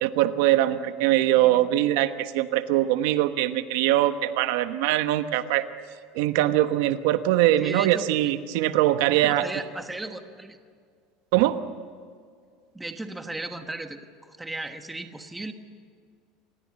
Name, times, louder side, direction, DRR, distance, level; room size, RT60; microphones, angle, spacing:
voice 1, 0.0-5.6 6.1-9.4 11.3-11.6, right 14 dB, 70° right, 10 dB, 1.1 m, -22 dB
voice 2, 7.6-8.0 9.1-10.6 12.7-14.0 14.3-15.5, right 2 dB, 5° right, 6 dB, 1.2 m, -35 dB
27.0 x 19.0 x 7.7 m, 2.1 s
cardioid pair, 170°, 0 cm